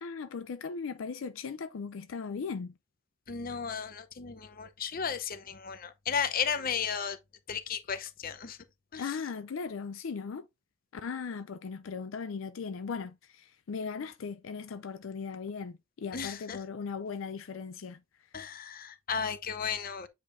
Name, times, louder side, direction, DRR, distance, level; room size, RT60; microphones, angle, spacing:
voice 1, 0.0-2.8 9.0-10.5 10.9-18.3, left 5 dB, 80° left, 0.4 m, -38 dB
voice 2, 3.3-7.2 7.5-8.6 8.9-9.1 16.1-16.6 18.3-20.1, left 7 dB, 45° left, 0.7 m, -34 dB
8.6 x 5.1 x 2.6 m
head